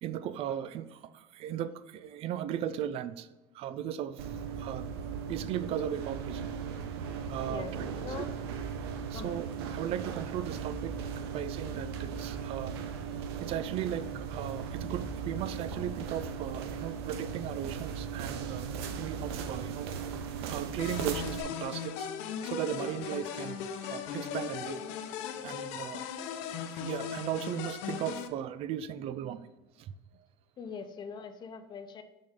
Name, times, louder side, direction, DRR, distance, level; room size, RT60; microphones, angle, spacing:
voice 1, 0.0-3.3 3.5-4.3 4.6-4.9 5.3-6.5 7.3-7.7 9.1-11.0 11.3-12.7 13.4-18.7 18.9-19.9 20.4-22.1 22.4-24.8 25.4-26.1 26.7-29.5 29.8-29.9, right 10 dB, 50° right, 14 dB, 0.4 m, -37 dB
sound 1, 4.2-21.4, right 6 dB, 85° right, 0.6 m, -37 dB
voice 2, 7.5-8.3 9.1-9.4 30.6-32.0, left 6 dB, 35° left, 10 dB, 0.7 m, -42 dB
sound 2, 20.8-28.3, left 7 dB, 70° left, 0.7 m, -38 dB
6.3 x 4.3 x 3.7 m, 1.0 s
supercardioid pair, 110°, 13 cm